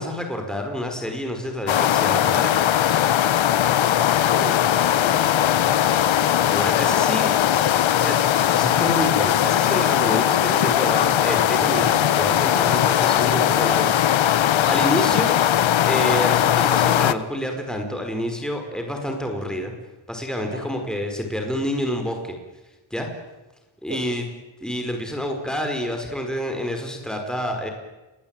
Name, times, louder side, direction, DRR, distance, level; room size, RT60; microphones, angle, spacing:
voice 1, 0.0-2.5 6.3-7.3 8.0-8.2 8.5-15.4 15.9-19.7 20.1-22.3 22.9-23.1 23.8-24.2 24.6-27.7, left 1 dB, ahead, 4 dB, 4.9 m, -28 dB
sound 1, 1.7-17.1, left 10 dB, 75° left, 1.2 m, -19 dB
voice 2, 3.7-4.7 4.9-5.8 14.5-14.8 20.4-20.7 23.9-24.1, right 2 dB, 25° right, 4 dB, 4.2 m, -39 dB
29.0 x 22.5 x 9.1 m, 1.1 s
wide cardioid pair, 140°, 47 cm